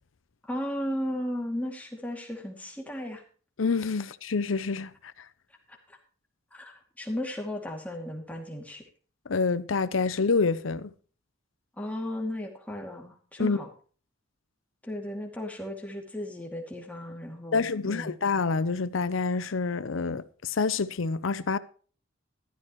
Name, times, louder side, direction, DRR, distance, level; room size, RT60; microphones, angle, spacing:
voice 1, 0.4-3.2 5.7-6.0 6.5-8.8 11.8-13.7 14.8-18.1, left 1 dB, 10° left, 2.4 m, -35 dB
voice 2, 3.6-5.1 9.3-10.9 13.4-13.6 17.5-21.6, left 4 dB, 80° left, 0.7 m, -27 dB
14.0 x 12.5 x 3.1 m
head